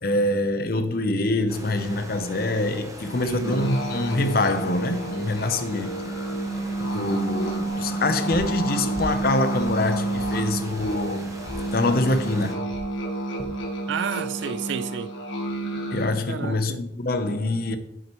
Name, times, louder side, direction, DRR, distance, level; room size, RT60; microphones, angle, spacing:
voice 1, 0.0-6.0 6.8-11.3 11.7-12.6 15.9-17.8, left 2 dB, 55° left, 0.7 m, -25 dB
sound 1, 1.5-12.5, right 1 dB, 15° right, 0.8 m, -41 dB
voice 2, 3.2-3.7 13.9-15.1 16.3-16.9 17.3-17.4, right 7 dB, 75° right, 0.3 m, -31 dB
sound 2, 3.4-16.1, right 2 dB, 90° left, 1.6 m, -30 dB
sound 3, 8.3-8.6 8.9-9.2 9.6-10.4 10.8-10.9 11.4-11.7 12.1-12.2 12.7-12.9 13.4-13.6 14.1-14.5, equal, 15° left, 1.3 m, -37 dB
8.8 x 6.4 x 3.0 m
head